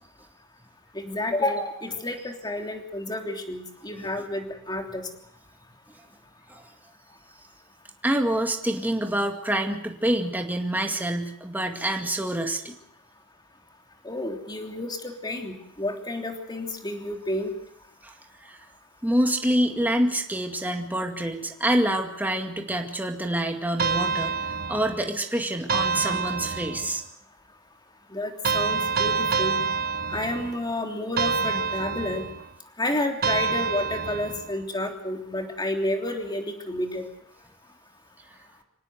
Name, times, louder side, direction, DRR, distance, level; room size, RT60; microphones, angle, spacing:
voice 1, 0.9-5.1 14.0-17.5 28.1-29.5 30.1-32.2 32.8-37.1, left 1 dB, 20° left, 3 dB, 3.2 m, -30 dB
voice 2, 8.0-12.7 18.0-18.1 18.4-18.6 19.0-27.0, right 1 dB, 10° right, 3 dB, 2.2 m, -26 dB
sound 1, 23.8-25.1 25.7-27.0 28.4-30.6 31.2-32.5 33.2-34.5, right 5 dB, 40° right, 1.0 m, -27 dB
26.0 x 18.0 x 8.1 m, 0.73 s
head